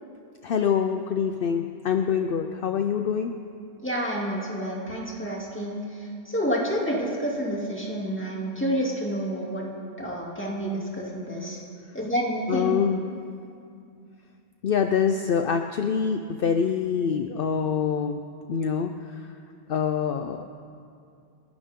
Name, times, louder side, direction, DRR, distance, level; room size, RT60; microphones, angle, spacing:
voice 1, 0.4-3.3 12.5-13.0 14.6-18.2 18.5-18.9 19.7-20.6, left 7 dB, 60° left, 6 dB, 0.8 m, -25 dB
voice 2, 3.8-9.6 10.0-11.6 11.9-12.7, equal, 10° left, -4 dB, 2.6 m, -29 dB
29.5 x 11.5 x 3.7 m, 2.4 s
omnidirectional pair, 1.1 m